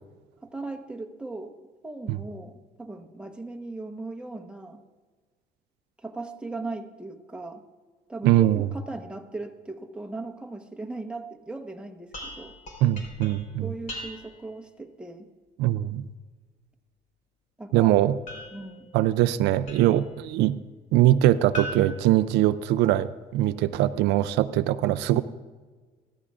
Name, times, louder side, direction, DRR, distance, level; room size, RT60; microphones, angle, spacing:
voice 1, 0.4-1.6 1.8-4.8 6.0-7.6 8.1-12.6 13.6-15.3 17.6-17.9 18.5-18.9 25.1-25.2, right 3 dB, 5° right, 3 dB, 1.0 m, -38 dB
voice 2, 8.2-8.7 12.8-13.7 15.6-16.0 17.7-18.1 18.9-20.6 20.9-25.2, right 14 dB, 90° right, 13 dB, 0.4 m, -22 dB
sound 1, 12.1-14.5 18.3-20.1 21.5-23.0, equal, 50° left, 3.7 m, -41 dB
14.0 x 13.5 x 2.4 m, 1.4 s
cardioid pair, 110°, 17 cm